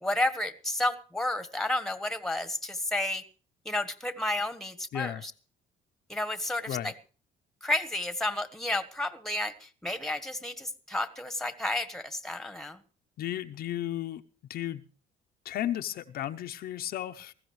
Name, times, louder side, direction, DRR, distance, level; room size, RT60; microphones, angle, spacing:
voice 1, 0.0-3.2 3.6-5.3 6.1-6.9 7.6-12.8, left 1 dB, 5° left, 1.4 m, -31 dB
voice 2, 4.9-5.2 6.7-6.9 13.2-14.2 14.5-14.8 15.4-17.3, left 12 dB, 65° left, 0.8 m, -34 dB
20.0 x 15.5 x 3.2 m
cardioid pair, 110°, 17 cm